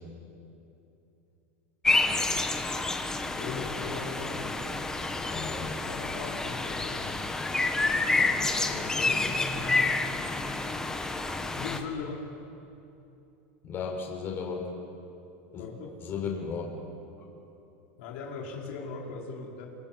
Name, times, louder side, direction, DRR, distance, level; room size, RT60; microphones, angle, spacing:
sound 1, 1.8-11.8, left 3 dB, 10° left, 1.6 m, -29 dB
voice 1, 3.3-4.6 5.9-7.2 7.6-7.7 8.5-10.0 11.6-12.2 15.6-15.9 18.0-19.7, left 5 dB, 65° left, -1 dB, 4.6 m, -39 dB
voice 2, 5.3-5.7 8.0-8.3 13.6-14.6 15.5-15.6 16.0-16.6, left 6 dB, 30° left, 1 dB, 5.2 m, -35 dB
28.5 x 27.0 x 7.5 m, 2.8 s
supercardioid pair, 150°, 7 cm